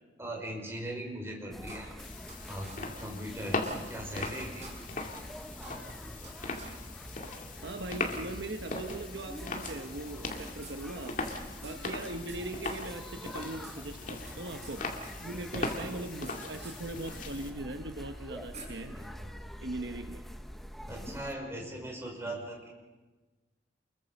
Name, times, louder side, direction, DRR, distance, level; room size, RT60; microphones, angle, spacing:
voice 1, 0.2-1.9 2.5-2.7 3.0-4.7 13.5-13.6 18.9-19.3 20.9-22.7, right 1 dB, 15° right, 0 dB, 5.3 m, -39 dB
sound 1, 1.5-21.3, equal, ahead, 0.8 m, -46 dB
sound 2, 1.7-2.4 2.6-2.8 3.1-3.2 3.5-4.3 4.6-4.7 5.1-5.2 5.5-6.3 6.6-6.7 7.1-7.2 8.0-8.1 9.1-10.3 10.6-10.8 11.0-11.1 11.4-12.4 12.6-12.8 13.1-13.8 14.0-14.8 15.0-16.4 16.6-16.8 17.9-18.0 18.5-18.6, right 3 dB, 40° right, 5.6 m, -49 dB
sound 3, 2.0-17.5, left 3 dB, 45° left, 2.3 m, -40 dB
voice 2, 7.6-11.2 11.6-14.9 15.2-19.0 19.6-20.2 22.2-22.4, right 2 dB, 65° right, 6 dB, 1.2 m, -40 dB
29.0 x 22.0 x 5.4 m, 1.2 s
head